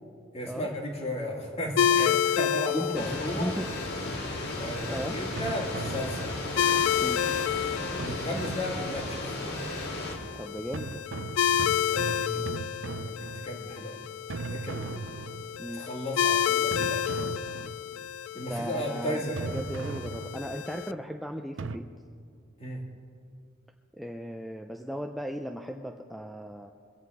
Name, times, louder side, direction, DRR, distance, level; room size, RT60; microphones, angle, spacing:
voice 1, 0.3-3.5 4.6-6.3 7.9-9.2 11.6-12.4 13.0-14.0 14.5-15.2 15.7-17.3 18.3-19.5 22.6-22.8, equal, 30° left, 0 dB, 2.1 m, -35 dB
sound 1, 1.8-20.9, left 9 dB, 85° left, 0.4 m, -30 dB
voice 2, 2.7-3.7 4.9-5.2 7.0-7.3 10.3-11.0 15.6-15.8 18.4-21.9 24.0-26.7, equal, ahead, 3 dB, 0.4 m, -36 dB
sound 2, 2.9-10.2, left 1 dB, 55° left, 2.2 m, -35 dB
sound 3, 5.4-6.7 8.0-9.3 10.7-13.8 14.3-15.8 16.7-18.1 19.4-20.7 21.6-21.8, right 4 dB, 65° right, 0.5 m, -38 dB
23.5 x 8.1 x 4.8 m, 2.2 s
head